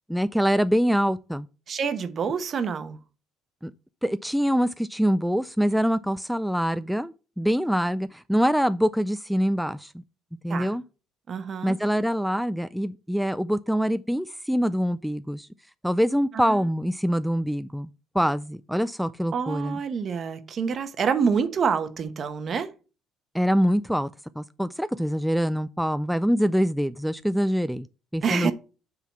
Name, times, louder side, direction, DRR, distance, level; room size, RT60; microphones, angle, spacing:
voice 1, 0.1-1.5 3.6-3.7 4.0-9.9 10.4-10.8 11.6-15.5 15.8-17.9 18.1-19.8 23.3-24.1 24.4-27.9 28.1-28.5, equal, ahead, 0.3 m, -24 dB
voice 2, 1.7-3.0 10.5-10.8 11.3-11.8 16.3-16.6 19.3-22.7 28.2-28.5, right 6 dB, 45° right, 1.0 m, -27 dB
7.2 x 3.9 x 5.9 m
supercardioid pair, 90°, 0 cm